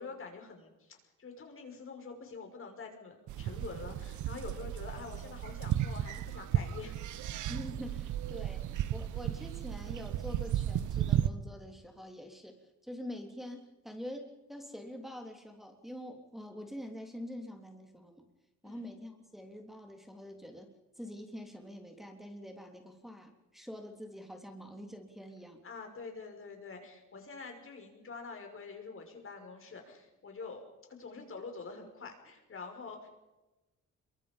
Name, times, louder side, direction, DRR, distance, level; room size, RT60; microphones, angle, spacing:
voice 1, 0.0-7.0 18.6-18.8 25.6-30.6 30.9-33.1, left 4 dB, 45° left, 3 dB, 5.8 m, -46 dB
sound 1, 3.3-11.3, right 11 dB, 75° right, 1.1 m, -34 dB
voice 2, 7.5-18.2 18.6-25.6, equal, ahead, 3 dB, 3.6 m, -45 dB
26.0 x 23.5 x 5.4 m, 1.0 s
cardioid pair, 90°, 30 cm